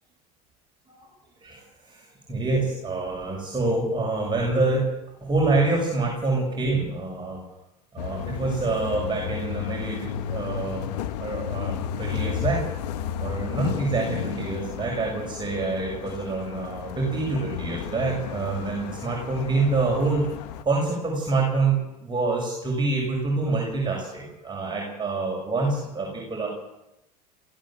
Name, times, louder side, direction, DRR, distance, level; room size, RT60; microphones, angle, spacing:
voice 1, 1.4-4.9 5.2-7.4 7.9-10.9 11.2-12.6 13.2-20.3 20.6-26.5, right 3 dB, 20° right, -2 dB, 7.1 m, -26 dB
sound 1, 8.0-20.6, left 9 dB, 75° left, 1.7 m, -33 dB
23.0 x 15.5 x 7.7 m, 0.91 s
hypercardioid pair, 85°, 21 cm